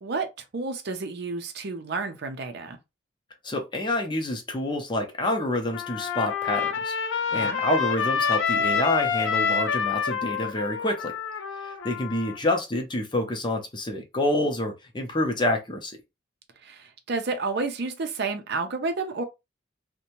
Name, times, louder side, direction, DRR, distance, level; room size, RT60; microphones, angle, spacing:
voice 1, 0.0-2.8 7.3-7.6 16.6-19.2, right 3 dB, 60° right, 0.5 m, -31 dB
voice 2, 3.4-11.1 11.5-16.0, left 1 dB, 25° left, 0.6 m, -28 dB
Trumpet, 5.7-12.4, left 6 dB, 85° left, 0.5 m, -27 dB
2.7 x 2.1 x 2.9 m
head